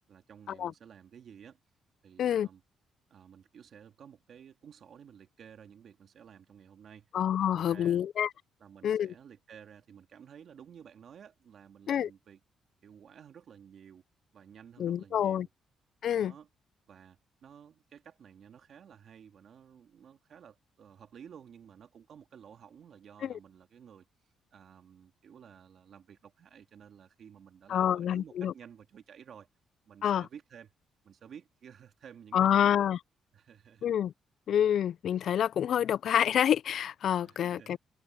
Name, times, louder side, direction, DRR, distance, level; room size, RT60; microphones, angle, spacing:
voice 1, 0.1-1.6 2.0-2.6 3.1-7.1 7.5-8.0 8.6-12.4 12.8-14.0 14.3-15.5 16.1-16.5 16.9-29.5 29.9-30.7 31.0-32.9 33.3-33.9 37.2-37.8, right 8 dB, 60° right, 1.9 m, -53 dB
voice 2, 7.1-8.3 8.8-9.1 11.9-12.1 14.8-15.5 16.0-16.3 23.2-23.3 27.7-28.5 30.0-30.3 32.3-33.0 33.8-34.1 34.5-37.8, left 9 dB, 65° left, 0.3 m, -27 dB
cardioid pair, 90°, 0 cm